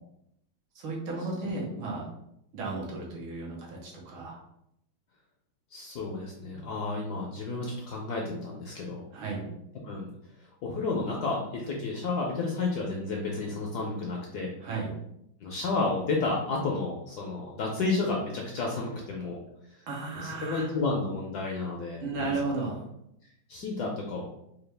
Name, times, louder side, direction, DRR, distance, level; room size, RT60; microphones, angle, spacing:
voice 1, 0.7-2.1 2.5-4.4 9.1-9.5 14.6-14.9 19.9-20.7 22.0-22.8, right 3 dB, 85° right, -2 dB, 1.8 m, -34 dB
voice 2, 5.7-9.1 9.8-10.1 10.6-14.5 15.4-19.4 19.7-19.8 20.2-22.3 23.5-24.3, left 3 dB, 70° left, -1 dB, 0.9 m, -31 dB
4.7 x 2.3 x 3.3 m, 0.79 s
omnidirectional pair, 2.2 m